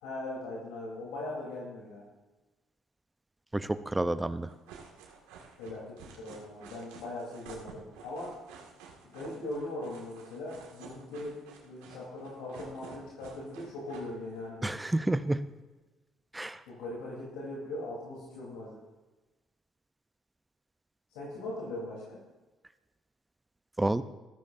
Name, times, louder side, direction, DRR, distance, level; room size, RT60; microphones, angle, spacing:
voice 1, 0.0-2.0 5.6-8.3 9.0-14.7 16.7-18.8 21.1-22.2, left 2 dB, 85° left, -5 dB, 3.5 m, -40 dB
voice 2, 3.5-4.5 14.6-15.4 16.3-16.6 23.8-24.0, right 2 dB, 10° right, 13 dB, 0.7 m, -29 dB
sound 1, 4.5-14.5, right 6 dB, 90° right, 2.0 m, -51 dB
15.0 x 14.0 x 2.7 m, 1.2 s
supercardioid pair, 75°, 0 cm